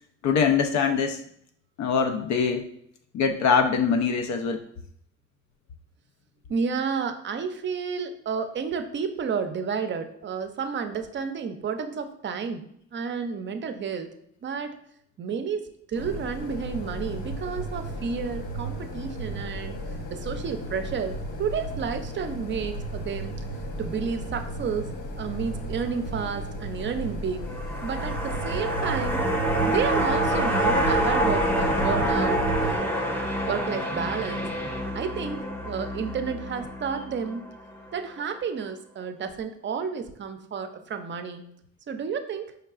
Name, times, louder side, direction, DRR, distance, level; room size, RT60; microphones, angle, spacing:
voice 1, 0.2-1.2 1.8-2.7 3.1-4.6, left 6 dB, 65° left, 5 dB, 0.4 m, -23 dB
voice 2, 6.5-14.1 14.4-14.8 15.2-19.8 20.1-23.4 23.8-27.5 27.8-29.2 29.5-33.2 33.5-34.5 34.9-37.5 37.9-41.5 41.9-42.5, right 6 dB, 40° right, 8 dB, 0.5 m, -31 dB
sound 1, 15.9-32.8, right 1 dB, 85° left, 0.8 m, -33 dB
sound 2, 27.5-37.9 38.2-38.3, right 1 dB, 5° left, 0.7 m, -27 dB
4.5 x 3.3 x 2.4 m, 0.70 s
cardioid pair, 90°, 30 cm